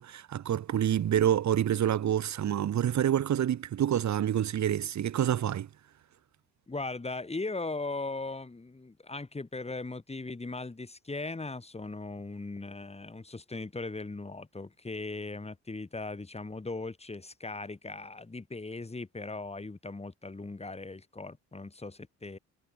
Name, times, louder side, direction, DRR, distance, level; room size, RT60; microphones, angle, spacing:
voice 1, 0.0-5.7, right 10 dB, 65° right, 6.3 m, -27 dB
voice 2, 6.7-22.4, left 3 dB, 20° left, 7.8 m, -38 dB
cardioid pair, 90°, 30 cm